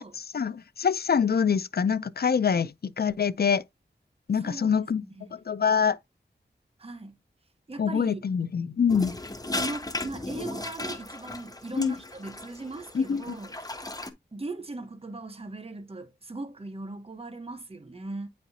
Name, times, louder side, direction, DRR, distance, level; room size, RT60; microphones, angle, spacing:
voice 1, 0.3-3.6 4.3-5.0 5.3-6.0 7.8-9.2 11.7-11.9 12.9-13.4, left 6 dB, 55° left, 0.5 m, -25 dB
voice 2, 4.4-5.3 6.8-7.2 7.7-8.3 9.5-13.7 14.3-18.3, right 2 dB, 30° right, 1.0 m, -39 dB
sound 1, 8.9-14.1, left 2 dB, 20° left, 0.9 m, -36 dB
9.1 x 4.2 x 2.7 m
wide cardioid pair, 75°, 19 cm